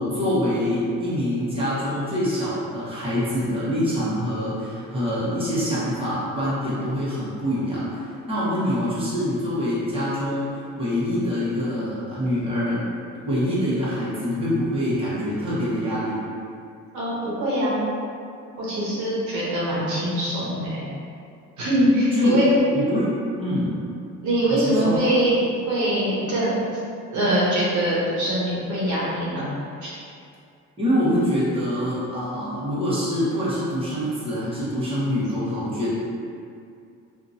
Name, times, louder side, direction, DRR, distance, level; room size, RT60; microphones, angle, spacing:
voice 1, 0.0-12.9 13.2-16.2 22.1-22.4 22.7-23.0 23.4-23.7 24.5-25.0 30.8-35.9, equal, 20° right, -10 dB, 1.1 m, -25 dB
voice 2, 16.9-17.8 18.6-20.8 21.6-22.5 24.2-25.4 25.7-26.6 27.1-29.5 29.8-29.9, right 1 dB, 75° right, -8 dB, 0.9 m, -23 dB
2.8 x 2.6 x 2.6 m, 2.4 s
cardioid pair, 90°, 30 cm